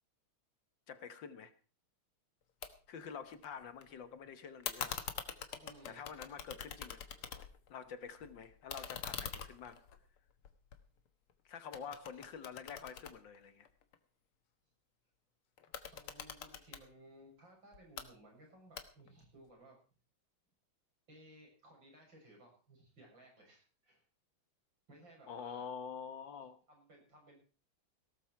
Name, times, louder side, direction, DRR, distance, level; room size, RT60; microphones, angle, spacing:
voice 1, 0.9-1.5 2.9-5.0 5.8-7.0 7.7-9.8 11.4-13.7 25.3-26.6, left 6 dB, 65° left, 12 dB, 1.7 m, -47 dB
sound 1, 2.6-2.7 3.0-3.8 4.6-7.7 8.1-11.3 11.7-14.0 15.6-16.8 17.7-18.1 18.8-19.2, left 8 dB, 90° left, 2.2 m, -45 dB
voice 2, 5.6-6.0 7.1-7.2 11.8-11.9 15.9-19.8 21.1-24.0 24.9-25.7 26.7-27.4, right 1 dB, 60° right, 0 dB, 7.6 m, -59 dB
18.5 x 13.0 x 4.6 m, 0.37 s
omnidirectional pair, 2.3 m